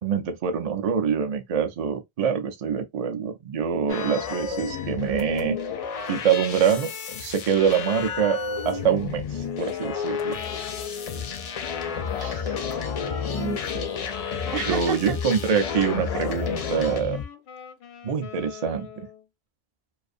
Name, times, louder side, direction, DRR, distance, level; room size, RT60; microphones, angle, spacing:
voice 1, 0.0-5.6 6.1-6.9 7.2-8.4 8.6-10.4 14.7-17.2 18.0-18.9, right 7 dB, 50° right, 0.4 m, -25 dB
sound 1, 3.9-17.2, left 6 dB, 55° left, 0.4 m, -31 dB
Wind instrument woodwind instrument, 10.2-19.2, left 9 dB, 85° left, 0.8 m, -42 dB
voice 2, 11.9-12.6 13.0-13.9 14.5-15.2, right 6 dB, 70° right, 0.9 m, -33 dB
2.5 x 2.4 x 2.5 m
omnidirectional pair, 1.1 m